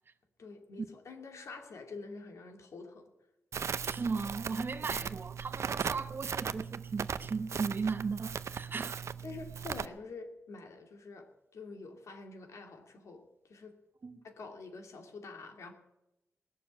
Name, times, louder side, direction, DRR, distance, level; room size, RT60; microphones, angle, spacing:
voice 1, 0.4-3.1 4.8-5.0 9.2-13.8 14.2-15.7, left 3 dB, 75° left, 2.6 m, -47 dB
Crackle, 3.5-9.8, right 7 dB, 65° right, 0.6 m, -38 dB
voice 2, 3.8-9.0 14.0-14.2, right 4 dB, 45° right, 0.9 m, -36 dB
19.5 x 7.0 x 8.8 m
wide cardioid pair, 115°, 5 cm